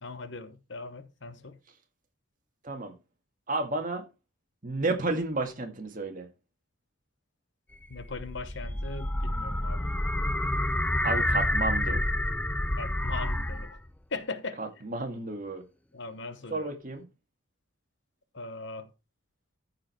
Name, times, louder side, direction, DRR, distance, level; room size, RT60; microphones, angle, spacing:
voice 1, 0.0-1.6 7.9-9.9 12.8-13.8 14.1-14.6 15.9-16.7 18.3-18.9, left 3 dB, 55° left, 1.0 m, -39 dB
voice 2, 3.5-4.0 4.6-6.3 11.0-12.0 14.6-15.6 16.5-17.0, right 2 dB, 40° right, 1.9 m, -31 dB
sound 1, 7.7-13.9, left 1 dB, 5° left, 0.4 m, -29 dB
14.0 x 4.7 x 4.5 m
head